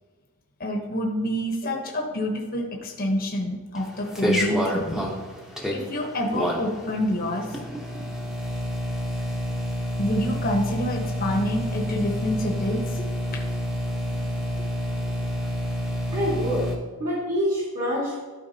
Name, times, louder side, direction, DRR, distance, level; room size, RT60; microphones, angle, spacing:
voice 1, 0.6-5.1 5.7-7.6 10.0-13.0 13.3-13.4, left 1 dB, 45° left, 1 dB, 1.0 m, -27 dB
sound 1, 3.7-16.8, equal, ahead, 0.9 m, -29 dB
voice 2, 16.1-16.7 17.0-18.2, equal, 45° right, -7 dB, 1.8 m, -26 dB
12.0 x 4.7 x 2.8 m, 1.4 s
head